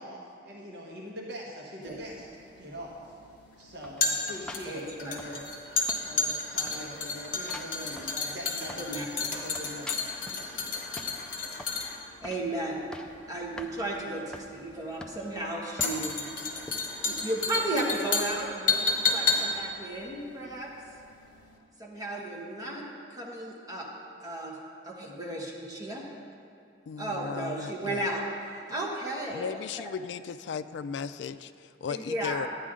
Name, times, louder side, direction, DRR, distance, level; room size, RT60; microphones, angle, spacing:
voice 1, 0.0-2.3 2.6-3.0 3.6-5.5 6.0-10.8, equal, 70° right, -3 dB, 1.1 m, -43 dB
sound 1, 1.9-21.1 21.4-21.5, left 4 dB, 50° left, 1.2 m, -32 dB
sound 2, 3.8-5.6 5.9-6.4 6.7-9.0 9.3-10.5 11.0-11.8 12.2-12.5 12.8-13.2 13.6-13.7 14.3-14.5 15.0-15.4 15.8-16.1 16.7-16.8, left 1 dB, 5° left, 0.4 m, -45 dB
voice 2, 4.7-5.2 8.8-9.0 12.2-12.8 13.3-16.3 17.0-20.7 21.8-23.9 24.2-24.6 24.8-26.0 27.0-28.2 28.7-29.6 31.9-32.5, right 1 dB, 20° right, -3 dB, 1.4 m, -34 dB
voice 3, 26.9-28.1 29.3-32.5, left 6 dB, 70° left, 12 dB, 0.3 m, -36 dB
12.0 x 9.2 x 3.7 m, 2.3 s
head